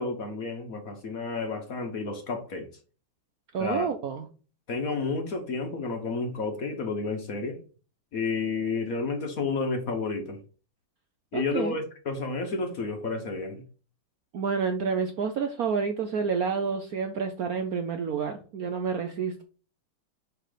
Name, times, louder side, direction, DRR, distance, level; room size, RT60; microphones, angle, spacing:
voice 1, 0.0-2.7 3.6-3.9 4.7-7.6 8.1-10.4 11.3-13.6, left 4 dB, 50° left, 1.2 m, -31 dB
voice 2, 3.5-4.2 11.3-11.8 14.3-19.4, right 6 dB, 65° right, 0.9 m, -29 dB
5.9 x 4.8 x 5.0 m
omnidirectional pair, 2.2 m